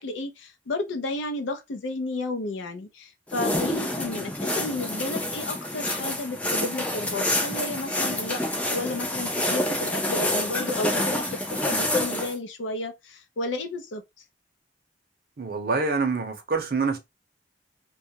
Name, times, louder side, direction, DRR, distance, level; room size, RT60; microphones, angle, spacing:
voice 1, 0.0-14.0, left 2 dB, 85° left, 0.5 m, -32 dB
sound 1, 3.3-12.3, left 1 dB, 5° left, 0.3 m, -27 dB
voice 2, 15.4-17.0, right 4 dB, 55° right, 0.6 m, -26 dB
2.3 x 2.0 x 2.7 m
head